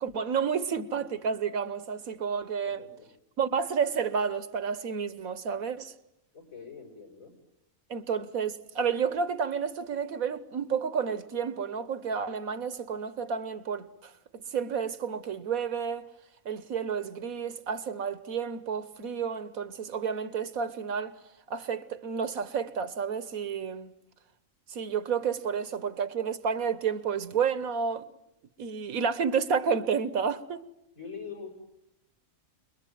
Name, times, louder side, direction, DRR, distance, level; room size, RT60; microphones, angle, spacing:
voice 1, 0.0-2.8 3.4-5.9 7.9-16.1 16.4-21.1 21.5-23.9 24.7-28.1 28.6-30.6, right 6 dB, 85° right, 1.6 m, -30 dB
voice 2, 6.3-7.3 31.0-31.5, left 5 dB, 75° left, 7.2 m, -43 dB
28.0 x 22.0 x 9.2 m
omnidirectional pair, 1.4 m